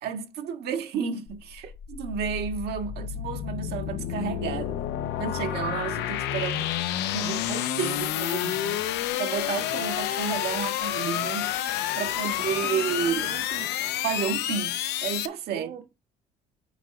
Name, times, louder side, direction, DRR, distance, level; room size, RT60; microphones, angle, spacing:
voice 1, 0.0-1.6 2.0-4.8 5.2-6.7 7.1-8.8 9.2-11.6 11.9-13.3 14.0-15.7, right 7 dB, 75° right, 1.7 m, -31 dB
sound 1, 1.3-15.3, left 12 dB, 85° left, 0.8 m, -30 dB
voice 2, 12.7-13.9 15.5-15.9, right 9 dB, 55° right, 1.2 m, -41 dB
8.1 x 3.8 x 5.8 m
cardioid pair, 110°, 17 cm